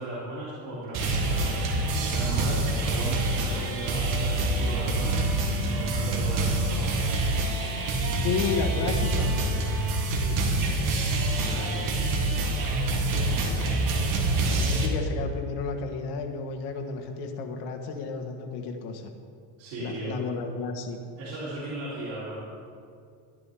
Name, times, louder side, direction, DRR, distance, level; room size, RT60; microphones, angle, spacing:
voice 1, 0.0-5.2 5.6-7.2 10.0-10.4 11.4-12.0 19.6-20.2 21.2-22.4, right 2 dB, 85° right, -9 dB, 3.0 m, -37 dB
sound 1, 0.9-14.9, right 2 dB, 50° right, 1.7 m, -26 dB
voice 2, 8.2-9.4 12.8-19.1 19.8-21.0, left 5 dB, 75° left, 4 dB, 1.4 m, -33 dB
12.5 x 10.5 x 3.5 m, 2.3 s
cardioid pair, 135°, 41 cm